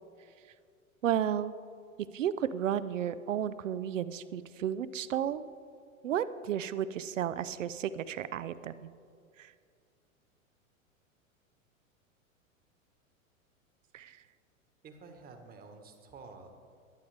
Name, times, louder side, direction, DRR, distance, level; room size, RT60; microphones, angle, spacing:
voice 1, 1.0-1.5 2.1-5.4 6.0-8.9 9.4-9.5 13.9-14.2, right 9 dB, 65° right, 16 dB, 0.7 m, -33 dB
voice 2, 14.8-16.5, right 4 dB, 20° right, 6 dB, 1.4 m, -50 dB
22.0 x 9.2 x 3.4 m, 2.3 s
figure-of-eight pair, 95°, 41 cm